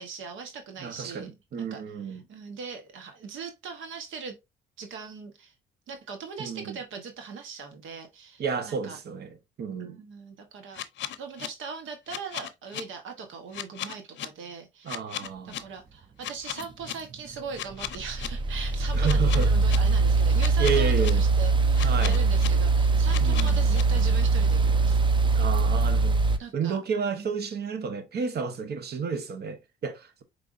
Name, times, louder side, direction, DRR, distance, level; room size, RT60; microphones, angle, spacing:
voice 1, 0.0-1.3 1.6-1.8 2.1-4.4 4.8-5.5 5.9-9.0 9.8-10.8 11.2-15.0 15.4-25.0 26.4-26.8 27.2-27.5, right 5 dB, 80° right, 1.0 m, -40 dB
voice 2, 0.8-2.2 6.4-6.8 8.4-10.0 14.8-15.6 18.9-19.5 20.6-21.2 21.8-22.2 23.2-23.6 25.3-26.2 26.5-30.2, right 6 dB, 55° right, 0.9 m, -31 dB
sound 1, 10.7-11.5 12.1-12.8 13.5-14.3 14.9-15.6 16.2-16.9 17.5-18.3 19.0-19.8 20.4-21.1 21.7-22.5 23.1-23.8, left 12 dB, 70° left, 0.6 m, -35 dB
sound 2, 16.6-26.4, right 4 dB, 25° right, 0.5 m, -22 dB
4.8 x 3.4 x 2.5 m
cardioid pair, 90°, 20 cm